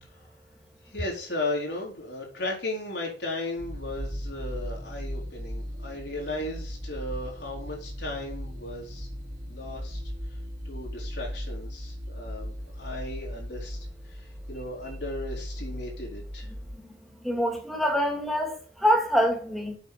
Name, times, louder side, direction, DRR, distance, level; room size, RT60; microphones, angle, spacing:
voice 1, 0.9-9.1 9.5-10.1 10.6-13.8 14.1-16.5, left 2 dB, 75° left, 4.1 m, -36 dB
sound 1, 3.6-16.8, equal, 45° right, 3.4 m, -37 dB
voice 2, 17.2-19.8, equal, ahead, 2.4 m, -25 dB
8.2 x 7.1 x 6.7 m
head